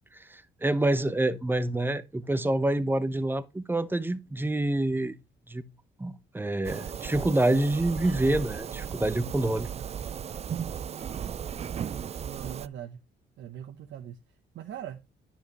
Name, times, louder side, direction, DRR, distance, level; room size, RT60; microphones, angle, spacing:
voice 1, 0.3-5.2 5.5-5.6 6.0-9.7, right 1 dB, 10° right, 0.8 m, -27 dB
sound 1, 6.6-12.7, right 8 dB, 35° right, 0.3 m, -36 dB
voice 2, 11.6-13.0 13.4-14.2 14.5-15.0, right 10 dB, 70° right, 0.9 m, -41 dB
9.6 x 7.3 x 3.0 m
cardioid pair, 90°, 20 cm